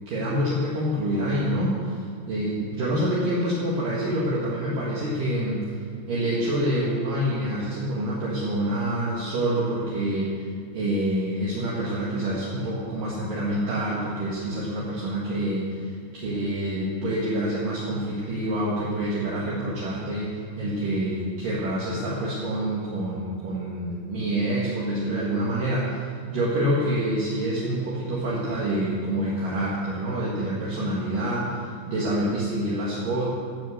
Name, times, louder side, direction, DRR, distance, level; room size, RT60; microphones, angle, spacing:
voice 1, 0.1-2.0 2.3-5.7 6.1-10.4 10.7-31.6 31.9-33.2, right 1 dB, 60° right, -6 dB, 3.1 m, -27 dB
14.5 x 6.7 x 7.8 m, 2.2 s
omnidirectional pair, 4.8 m